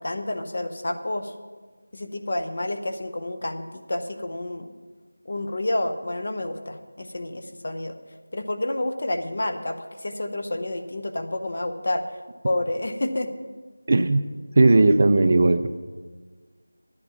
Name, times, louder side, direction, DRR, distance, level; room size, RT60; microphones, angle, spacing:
voice 1, 0.0-1.3 1.9-4.7 5.2-7.9 8.3-12.0 12.4-13.3, left 1 dB, 40° left, 6 dB, 0.8 m, -29 dB
voice 2, 13.9-14.3 14.6-15.7, right 2 dB, 30° right, 10 dB, 0.3 m, -17 dB
11.0 x 8.8 x 5.9 m, 1.4 s
figure-of-eight pair, 180°, 0 cm